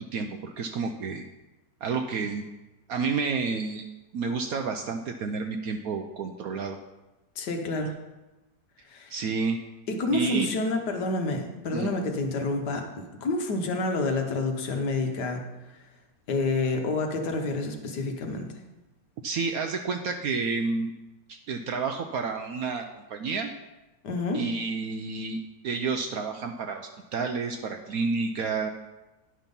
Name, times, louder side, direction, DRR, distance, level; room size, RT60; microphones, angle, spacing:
voice 1, 0.1-1.2 1.8-2.4 2.9-3.9 4.1-6.8 9.1-9.6 10.1-10.5 11.7-11.9 19.2-20.9 21.3-23.5 24.3-28.7, right 4 dB, 70° right, 5 dB, 0.9 m, -30 dB
voice 2, 7.4-7.9 8.9-9.1 9.9-15.5 16.3-18.5 24.0-24.4, left 2 dB, 65° left, 4 dB, 1.6 m, -28 dB
10.0 x 5.7 x 5.3 m, 1.1 s
omnidirectional pair, 2.0 m